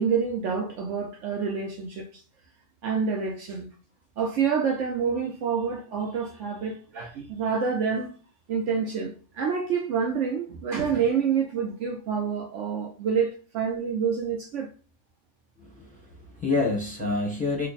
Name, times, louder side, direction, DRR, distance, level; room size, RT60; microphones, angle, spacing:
voice 1, 0.0-2.1 2.8-3.7 4.2-8.1 8.5-14.7, right 6 dB, 65° right, 0.8 m, -27 dB
voice 2, 15.6-17.7, left 3 dB, 5° left, 0.8 m, -28 dB
3.2 x 2.2 x 4.0 m
omnidirectional pair, 1.5 m